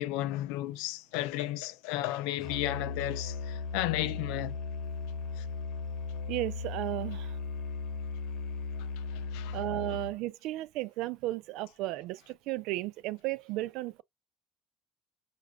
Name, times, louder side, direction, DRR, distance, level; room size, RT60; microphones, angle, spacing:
voice 1, 0.0-4.6 5.4-5.5 9.3-9.6, left 15 dB, 85° left, 0.4 m, -33 dB
Musical instrument, 2.4-10.2, left 4 dB, 65° left, 1.0 m, -37 dB
voice 2, 6.3-7.4 9.5-14.0, right 17 dB, 75° right, 0.3 m, -34 dB
5.9 x 2.4 x 2.4 m
cardioid pair, 110°, 0 cm